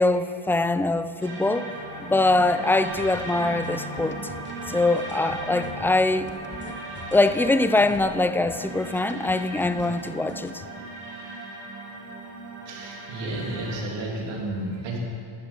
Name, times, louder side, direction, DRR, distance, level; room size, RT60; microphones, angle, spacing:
voice 1, 0.0-1.7 2.0-4.2 4.7-6.3 7.1-10.6, left 2 dB, 5° left, 12 dB, 0.3 m, -23 dB
sound 1, 1.2-13.8, right 2 dB, 30° right, 2.6 m, -37 dB
sound 2, 2.9-10.7, left 5 dB, 25° left, 0.9 m, -44 dB
voice 2, 12.6-15.0, right 1 dB, 85° right, -2 dB, 3.0 m, -32 dB
14.5 x 12.5 x 5.1 m, 2.8 s
cardioid pair, 125°, 42 cm